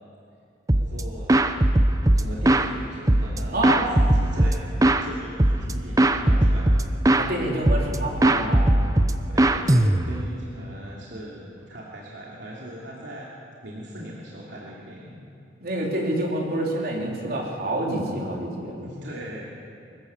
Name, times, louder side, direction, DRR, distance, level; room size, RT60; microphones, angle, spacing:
sound 1, 0.7-1.0 1.3-2.7 3.1-5.1 5.4-5.7 6.0-7.3 7.7-8.0 8.2-10.3, right 1 dB, 20° right, 0.8 m, -19 dB
voice 1, 0.7-1.5 2.1-6.8 9.3-13.3 13.6-15.3 18.8-19.4, right 1 dB, 75° right, -5 dB, 3.0 m, -39 dB
voice 2, 7.2-8.8 15.6-18.8, right 1 dB, 55° right, -2 dB, 4.0 m, -27 dB
24.5 x 15.0 x 7.2 m, 2.5 s
head